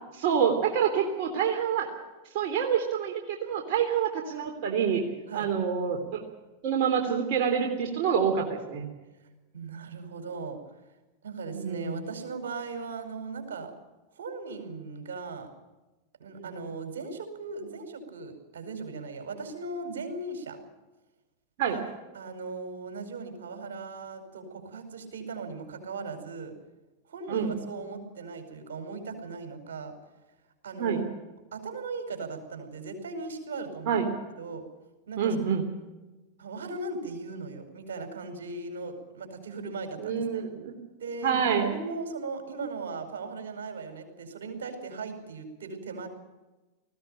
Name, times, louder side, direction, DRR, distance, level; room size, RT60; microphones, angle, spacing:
voice 1, 0.1-1.9 2.3-5.0 5.3-6.2 6.6-8.8 11.5-12.0 16.4-16.5 21.6-21.8 27.3-27.5 30.8-31.0 33.9-34.1 35.2-35.6 40.0-40.7 41.2-41.7, right 7 dB, 60° right, 2 dB, 3.3 m, -27 dB
voice 2, 9.5-10.6 11.2-13.7 14.1-15.5 16.2-20.6 21.7-21.8 22.1-26.5 27.1-29.9 30.6-31.0 31.5-34.0 34.4-34.6 35.1-35.3 36.4-40.4 41.0-46.1, right 3 dB, 85° right, 6 dB, 5.0 m, -38 dB
20.0 x 16.0 x 9.0 m, 1.1 s
hypercardioid pair, 110°, 0 cm